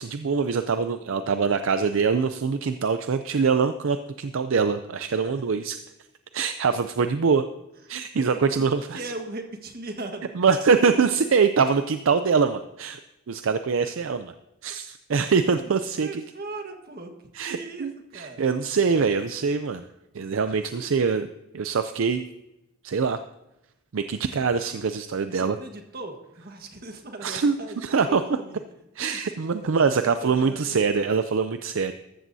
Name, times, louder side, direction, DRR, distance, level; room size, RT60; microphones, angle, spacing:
voice 1, 0.0-5.8 6.3-7.4 7.9-9.0 10.4-13.0 13.3-14.3 14.6-16.2 17.3-19.9 20.1-21.3 21.5-22.2 22.8-23.2 23.9-25.6 27.2-28.2 29.0-31.9, right 5 dB, 65° right, 10 dB, 0.5 m, -24 dB
voice 2, 7.9-8.6 8.9-10.3 15.6-15.7 16.0-17.1 17.5-18.4 20.7-20.8 25.3-28.6 29.0-29.5 30.0-30.8, right 2 dB, 45° right, 5 dB, 1.5 m, -39 dB
14.0 x 13.5 x 2.7 m, 0.92 s
head